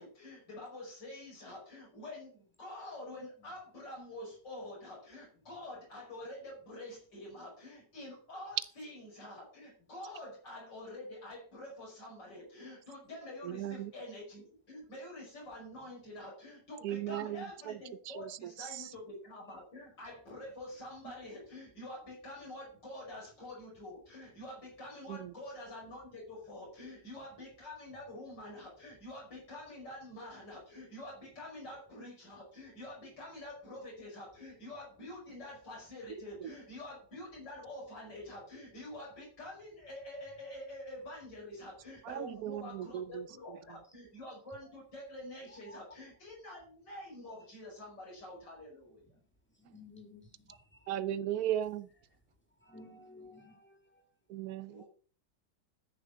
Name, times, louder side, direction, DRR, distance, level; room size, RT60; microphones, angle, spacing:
voice 1, 0.0-49.1 54.7-54.9, left 1 dB, 85° left, 6.1 m, -47 dB
voice 2, 13.4-13.9 16.8-17.8 18.1-18.9 25.1-25.3 36.4-36.5 42.0-43.3 50.9-51.9 54.3-54.8, right 11 dB, 65° right, 1.1 m, -37 dB
voice 3, 49.6-50.2 50.7-50.9 52.6-54.1, left 3 dB, 5° left, 2.6 m, -54 dB
13.5 x 6.4 x 6.1 m
omnidirectional pair, 1.9 m